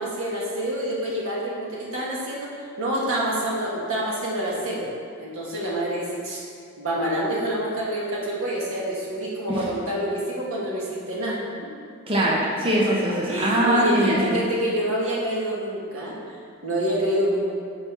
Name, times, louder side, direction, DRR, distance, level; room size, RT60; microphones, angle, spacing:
voice 1, 0.0-2.5 2.8-4.8 5.2-6.4 6.8-11.4 13.3-17.5, right 1 dB, 70° right, -5 dB, 1.7 m, -27 dB
voice 2, 12.1-14.5, equal, 25° right, -5 dB, 0.9 m, -22 dB
6.2 x 4.2 x 5.8 m, 2.3 s
head